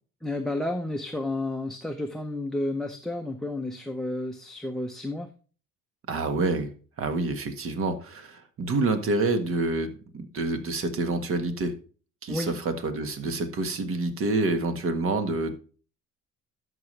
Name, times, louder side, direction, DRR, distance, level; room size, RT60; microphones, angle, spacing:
voice 1, 0.2-5.3 12.3-12.6, left 2 dB, ahead, 4 dB, 0.7 m, -31 dB
voice 2, 6.1-6.7 7.0-11.7 12.2-15.5, right 3 dB, 45° right, 9 dB, 1.5 m, -27 dB
13.0 x 5.9 x 3.2 m, 0.39 s
cardioid pair, 135°, 30 cm